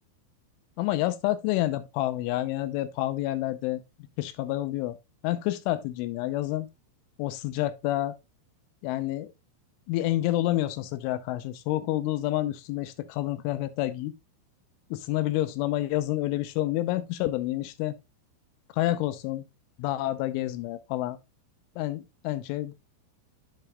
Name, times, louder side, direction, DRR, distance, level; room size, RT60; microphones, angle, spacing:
voice 1, 0.8-3.8 4.2-5.0 5.2-6.7 7.2-8.1 8.8-9.3 9.9-14.1 14.9-18.0 18.8-19.4 19.8-21.2 21.8-22.7, left 15 dB, 85° left, 3.0 m, -28 dB
8.8 x 8.2 x 2.3 m
omnidirectional pair, 5.8 m